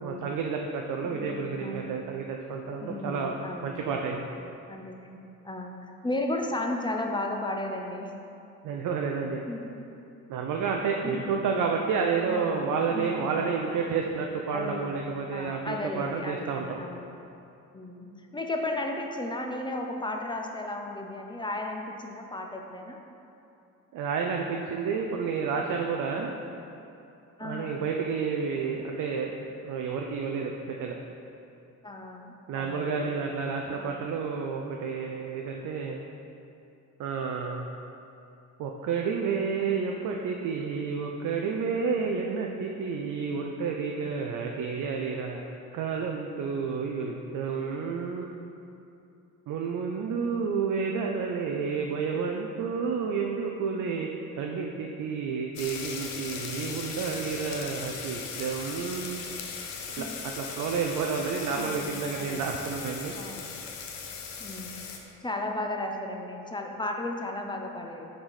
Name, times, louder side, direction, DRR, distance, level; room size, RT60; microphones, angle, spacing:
voice 1, 0.0-3.3 3.6-4.3 8.6-9.5 10.3-16.8 23.9-26.3 27.4-29.4 29.6-31.0 32.5-36.0 37.0-37.7 38.6-45.4 45.7-48.4 49.5-54.1 54.4-59.2 59.9-63.1, right 5 dB, 45° right, 1 dB, 0.6 m, -30 dB
voice 2, 1.0-1.9 2.8-4.0 4.7-8.2 9.5-9.9 11.0-11.3 12.3-14.0 14.5-17.1 17.7-23.0 27.4-27.9 31.8-33.2 33.6-34.0 50.1-50.7 60.0-60.3 61.5-62.5 63.1-63.5 64.4-68.1, left 2 dB, 10° left, 2 dB, 0.6 m, -35 dB
sound 1, 55.6-65.0, left 5 dB, 70° left, 0.7 m, -38 dB
6.2 x 4.6 x 4.2 m, 2.8 s
figure-of-eight pair, 40°, 45 cm